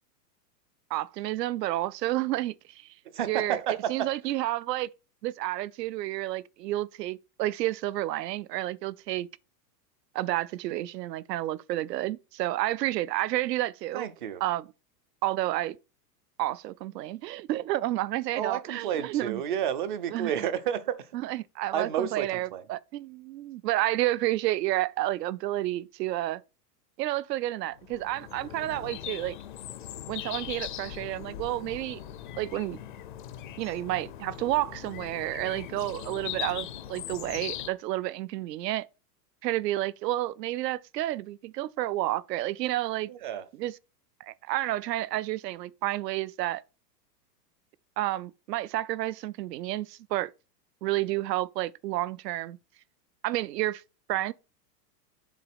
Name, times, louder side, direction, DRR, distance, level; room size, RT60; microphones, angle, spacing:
voice 1, 0.9-2.9 3.2-3.6 3.9-4.9 5.2-9.3 10.1-14.0 14.4-14.6 15.2-15.8 16.4-19.4 20.1-20.3 21.3-26.4 27.0-29.4 30.1-32.0 32.4-32.8 33.6-38.9 39.4-43.1 43.6-43.7 44.2-46.6 48.0-50.3 50.8-52.6 53.2-53.8 54.1-54.3, right 15 dB, 80° right, 0.6 m, -30 dB
voice 2, 3.0-4.1 13.9-14.4 18.3-21.1 21.7-22.6 43.1-43.5, right 9 dB, 35° right, 0.4 m, -31 dB
sound 1, 27.8-37.7, left 11 dB, 35° left, 0.4 m, -40 dB
7.3 x 3.9 x 5.8 m
supercardioid pair, 160°, 49 cm